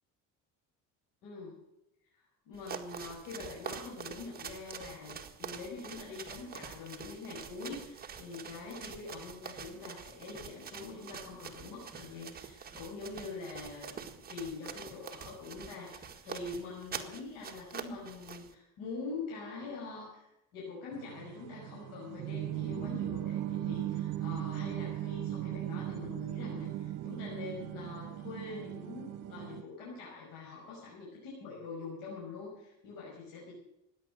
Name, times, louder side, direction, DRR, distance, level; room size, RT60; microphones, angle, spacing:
voice 1, 1.2-1.6 2.1-33.5, left 4 dB, 80° left, -4 dB, 6.2 m, -44 dB
sound 1, 2.5-18.5, right 7 dB, 25° right, 1.8 m, -46 dB
sound 2, 20.9-29.6, right 13 dB, 65° right, 1.2 m, -38 dB
16.0 x 10.5 x 6.6 m, 0.88 s
cardioid pair, 120°, 33 cm